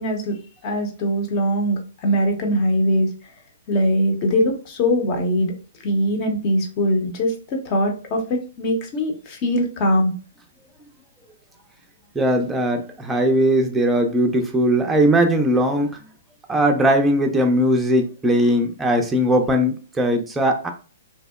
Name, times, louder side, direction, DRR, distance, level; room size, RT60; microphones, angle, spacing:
voice 1, 0.0-3.1 3.7-5.5 5.8-10.1, equal, 40° left, 3 dB, 0.7 m, -22 dB
voice 2, 12.1-16.0 16.5-20.7, equal, 10° right, 3 dB, 0.4 m, -19 dB
2.8 x 2.0 x 2.2 m, 0.37 s
hypercardioid pair, 130°, 0 cm